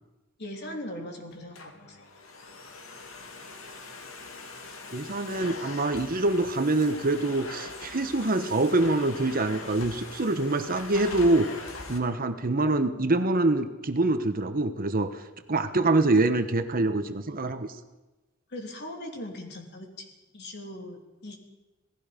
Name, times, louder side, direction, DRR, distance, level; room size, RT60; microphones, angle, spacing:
voice 1, 0.4-2.0 18.5-21.4, left 1 dB, 55° left, 2 dB, 3.3 m, -40 dB
Domestic sounds home sounds, 1.3-12.0, left 3 dB, 80° left, 2.5 m, -42 dB
voice 2, 4.9-11.5 11.9-15.1 15.5-17.7, right 2 dB, 45° right, 9 dB, 1.1 m, -25 dB
27.0 x 18.5 x 5.2 m, 1.1 s
head